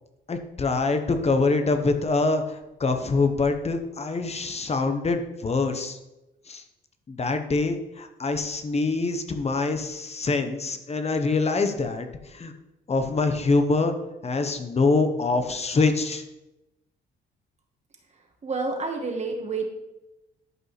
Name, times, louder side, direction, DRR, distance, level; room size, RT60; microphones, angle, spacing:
voice 1, 0.3-6.0 6.5-6.6 7.1-12.5 12.9-13.9 14.2-16.2, left 3 dB, 30° left, 7 dB, 1.1 m, -25 dB
voice 2, 18.4-19.7, right 3 dB, 35° right, 3 dB, 1.6 m, -29 dB
12.0 x 5.4 x 3.3 m, 0.95 s
cardioid pair, 90°, 20 cm